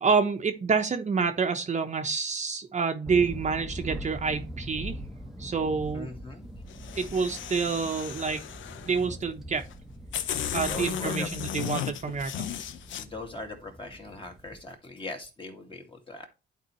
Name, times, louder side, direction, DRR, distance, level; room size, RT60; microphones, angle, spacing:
voice 1, 0.0-5.0 5.4-6.1 7.0-8.4 8.8-9.7 10.5-12.5, right 5 dB, 35° right, 1.0 m, -28 dB
sound 1, 3.0-14.7, equal, ahead, 1.0 m, -42 dB
voice 2, 5.9-6.4 10.6-11.3 13.0-16.3, left 3 dB, 25° left, 2.3 m, -40 dB
sound 2, 6.7-9.0 9.7-9.8 10.1-13.0, left 9 dB, 75° left, 0.8 m, -35 dB
11.5 x 4.4 x 3.1 m
cardioid pair, 90°, 20 cm